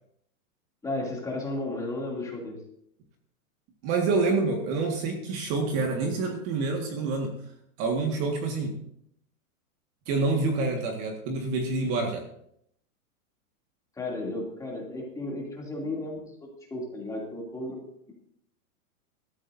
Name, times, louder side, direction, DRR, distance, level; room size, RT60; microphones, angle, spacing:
voice 1, 0.8-2.6 14.0-17.8, left 2 dB, 10° left, -2 dB, 2.8 m, -34 dB
voice 2, 3.8-7.4 7.8-8.8 10.1-12.2, right 3 dB, 35° right, 2 dB, 1.9 m, -27 dB
19.5 x 13.5 x 2.7 m, 0.71 s
supercardioid pair, 160°, 43 cm